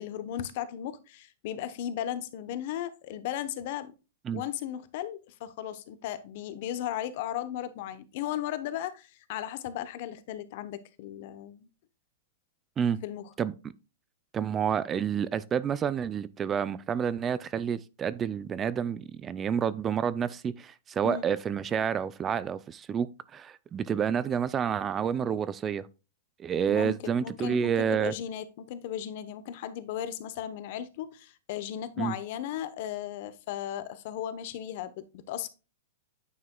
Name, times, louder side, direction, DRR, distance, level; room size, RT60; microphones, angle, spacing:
voice 1, 0.0-3.9 4.3-11.7 13.0-13.3 21.0-21.3 26.7-35.5, left 11 dB, 50° left, 0.9 m, -36 dB
voice 2, 14.3-25.9 26.4-28.1 32.0-32.2, right 7 dB, 20° right, 0.3 m, -29 dB
9.4 x 5.7 x 2.2 m
hypercardioid pair, 140°, 0 cm